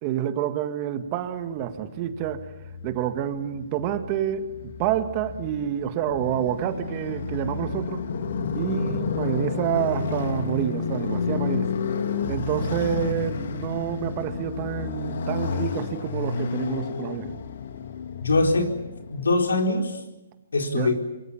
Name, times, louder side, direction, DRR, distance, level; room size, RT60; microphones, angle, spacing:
voice 1, 0.0-2.4 2.8-4.5 4.8-8.0 8.5-11.7 12.3-17.4 20.7-20.9, right 10 dB, 30° right, 8 dB, 1.9 m, -28 dB
Motorcycle, 1.4-19.6, left 5 dB, 60° left, 2.5 m, -31 dB
voice 2, 18.2-18.8 19.1-20.0 20.5-20.9, left 2 dB, 85° left, 3 dB, 4.4 m, -22 dB
26.0 x 23.0 x 7.3 m, 0.97 s
hypercardioid pair, 145°, 0 cm